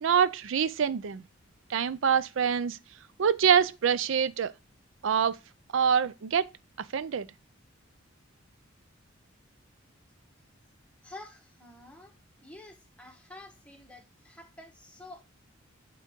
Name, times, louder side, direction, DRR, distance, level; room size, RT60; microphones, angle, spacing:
voice 1, 0.0-1.2 1.7-2.8 3.2-4.5 5.0-5.4 5.7-6.5 6.8-7.3, right 7 dB, 70° right, 0.4 m, -25 dB
voice 2, 11.0-12.1 12.4-15.2, left 2 dB, 5° left, 1.3 m, -49 dB
9.2 x 3.8 x 3.6 m
head